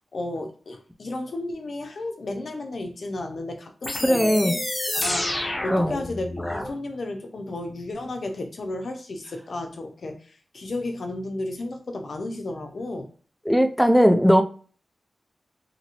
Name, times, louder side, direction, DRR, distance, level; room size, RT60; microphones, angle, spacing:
voice 1, 0.1-4.6 4.9-13.1, left 2 dB, 65° left, 0.6 m, -33 dB
sound 1, 3.8-6.7, left 1 dB, 35° left, 0.9 m, -28 dB
voice 2, 4.0-4.5 5.7-5.9 13.5-14.4, equal, ahead, 0.4 m, -18 dB
2.8 x 2.7 x 2.9 m
cardioid pair, 60°, 0 cm